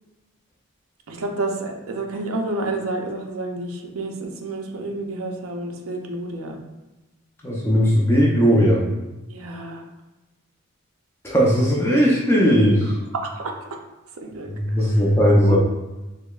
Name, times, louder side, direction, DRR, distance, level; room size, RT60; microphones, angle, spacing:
voice 1, 1.1-6.6 9.3-9.8 12.8-13.5 14.2-15.0 15.4-15.6, right 2 dB, 85° right, 2 dB, 0.5 m, -30 dB
voice 2, 7.4-8.8 11.2-12.8 14.5-15.6, equal, 10° left, -4 dB, 0.5 m, -17 dB
4.9 x 2.0 x 2.3 m, 1.1 s
head